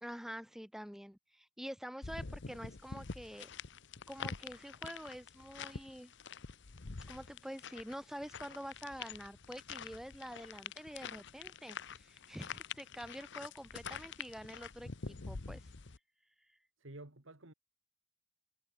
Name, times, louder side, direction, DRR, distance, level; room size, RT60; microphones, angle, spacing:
voice 1, 0.0-3.5 4.1-6.1 7.0-15.6, equal, ahead, 0.9 m, -47 dB
sound 1, 2.0-16.0, left 5 dB, 55° left, 0.9 m, -47 dB
voice 2, 16.8-17.5, right 2 dB, 65° right, 2.1 m, -51 dB
head